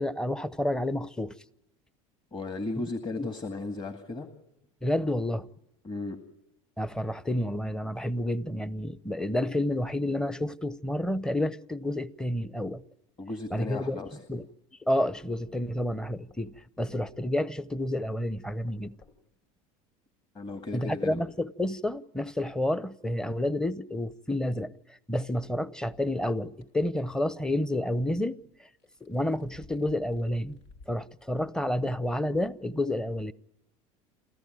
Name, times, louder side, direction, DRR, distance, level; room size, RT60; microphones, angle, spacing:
voice 1, 0.0-1.3 3.2-3.3 4.8-5.5 6.8-12.8 13.5-14.0 14.3-14.5 14.8-18.9 20.7-24.7 25.1-28.4 29.0-30.6 30.9-33.3, left 1 dB, 5° left, 0.8 m, -30 dB
voice 2, 2.3-4.3 5.8-6.2 13.2-14.2 20.3-21.2, left 2 dB, 25° left, 2.2 m, -35 dB
sound 1, 14.1-14.5 15.5-15.7 16.3-16.5 17.1-17.3 18.5-19.2 20.5-21.3, left 4 dB, 45° left, 5.8 m, -56 dB
sound 2, 26.6-26.7 28.6-31.0 31.5-31.6 32.3-32.4, left 3 dB, 75° left, 2.7 m, -54 dB
28.5 x 14.0 x 9.4 m
hypercardioid pair, 90°, 17 cm